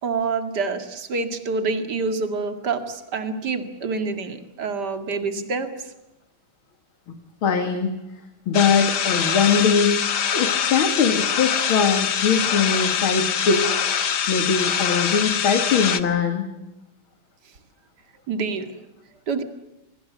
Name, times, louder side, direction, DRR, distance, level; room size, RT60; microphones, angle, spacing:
voice 1, 0.0-5.7 18.3-18.7 19.3-19.4, right 4 dB, 50° right, 7 dB, 2.7 m, -27 dB
voice 2, 7.4-7.9 8.5-10.0 10.3-13.7 14.3-16.5, left 6 dB, 70° left, 6 dB, 2.8 m, -21 dB
sound 1, 8.5-16.0, left 8 dB, 55° left, 1.7 m, -24 dB
26.0 x 20.0 x 8.2 m, 0.95 s
omnidirectional pair, 2.4 m